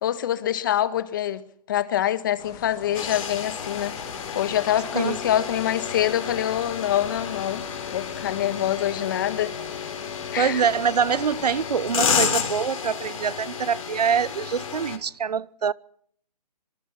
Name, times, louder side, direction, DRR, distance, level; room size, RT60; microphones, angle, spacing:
voice 1, 0.0-4.0 4.3-9.5 10.3-10.6, left 11 dB, 30° left, 1.4 m, -25 dB
sound 1, 2.4-11.7, left 7 dB, 15° left, 2.5 m, -44 dB
sound 2, 2.9-15.0, left 7 dB, 55° left, 4.2 m, -31 dB
voice 2, 10.4-15.7, right 7 dB, 70° right, 0.8 m, -24 dB
25.5 x 24.5 x 5.8 m
hypercardioid pair, 165°, 21 cm